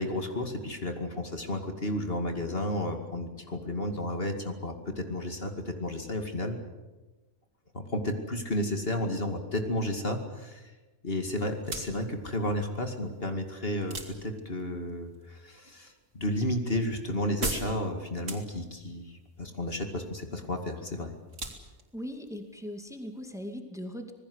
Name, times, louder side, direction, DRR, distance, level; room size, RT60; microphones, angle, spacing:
voice 1, 0.0-6.6 7.7-10.7 11.0-21.1, left 1 dB, 50° left, 5 dB, 2.5 m, -32 dB
sound 1, 11.5-23.5, right 2 dB, 75° right, 3.6 m, -43 dB
voice 2, 21.9-24.1, equal, ahead, 5 dB, 2.3 m, -39 dB
26.5 x 20.0 x 8.0 m, 1.2 s
omnidirectional pair, 1.3 m